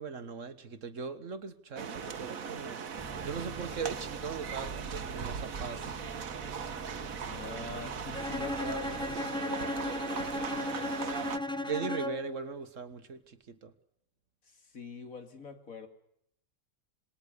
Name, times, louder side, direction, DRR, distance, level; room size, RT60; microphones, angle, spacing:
voice 1, 0.0-2.8 3.2-5.9 8.6-9.0 11.2-13.7, right 5 dB, 65° right, 11 dB, 1.8 m, -39 dB
sound 1, 1.8-11.4, right 6 dB, 80° right, 1.7 m, -39 dB
Bus, 3.0-9.2, right 3 dB, 20° right, 1.7 m, -47 dB
voice 2, 7.3-9.8 10.3-11.2 14.4-15.9, left 5 dB, 80° left, 6 dB, 3.0 m, -44 dB
Bowed string instrument, 8.1-12.4, left 1 dB, 5° left, 0.8 m, -35 dB
27.5 x 20.0 x 6.7 m, 0.72 s
omnidirectional pair, 1.4 m